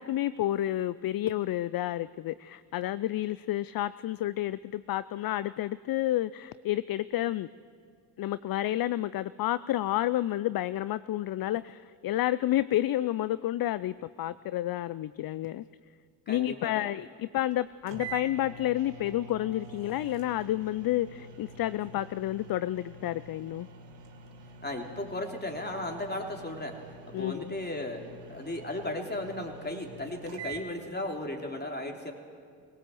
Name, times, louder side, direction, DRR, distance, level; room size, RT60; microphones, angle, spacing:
voice 1, 0.0-7.5 8.2-15.6 16.3-23.7 27.1-27.5, left 14 dB, 50° left, 17 dB, 0.5 m, -30 dB
voice 2, 16.3-16.9 24.6-26.8 27.1-32.1, left 1 dB, 20° left, 2 dB, 3.4 m, -36 dB
sound 1, 17.5-17.6 17.9-30.7, right 3 dB, 70° right, 2.4 m, -46 dB
20.5 x 18.0 x 7.8 m, 2.2 s
supercardioid pair, 55°, 45 cm